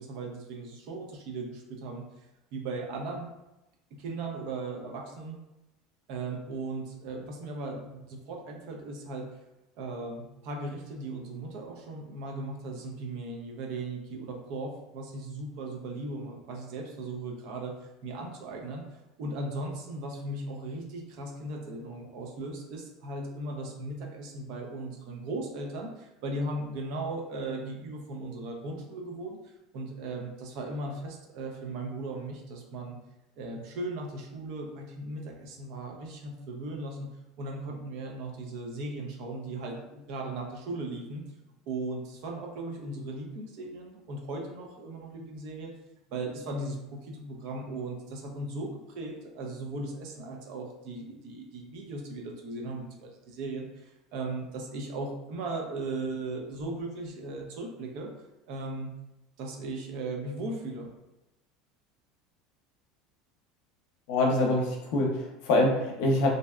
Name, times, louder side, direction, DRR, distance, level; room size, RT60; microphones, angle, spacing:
voice 1, 0.0-2.3 2.5-3.3 4.0-5.4 6.1-9.3 9.8-18.8 19.2-29.4 29.7-33.0 33.4-37.1 37.4-41.2 41.7-45.7 46.1-58.1 58.5-58.9 59.4-60.9, right 2 dB, 65° right, 1 dB, 0.5 m, -37 dB
voice 2, 64.1-66.3, left 2 dB, 70° left, 0 dB, 0.6 m, -25 dB
2.6 x 2.1 x 2.3 m, 0.96 s
supercardioid pair, 135°, 0 cm